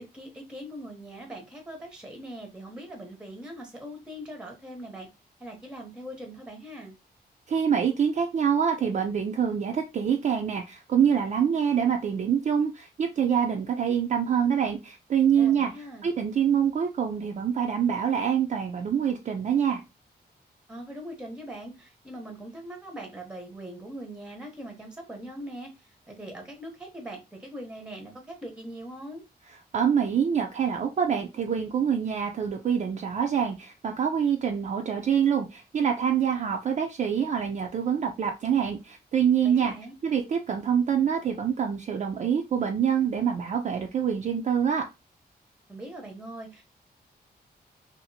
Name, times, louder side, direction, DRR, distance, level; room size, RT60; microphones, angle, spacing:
voice 1, 0.0-5.1 5.4-6.9 15.3-16.1 20.7-29.2 39.4-39.9 45.7-46.6, right 1 dB, 5° right, 3 dB, 0.7 m, -41 dB
voice 2, 7.5-15.7 16.0-19.8 29.7-39.7 40.0-44.8, right 8 dB, 45° right, 3 dB, 0.4 m, -25 dB
2.7 x 2.5 x 2.6 m, 0.25 s
wide cardioid pair, 130°, 17 cm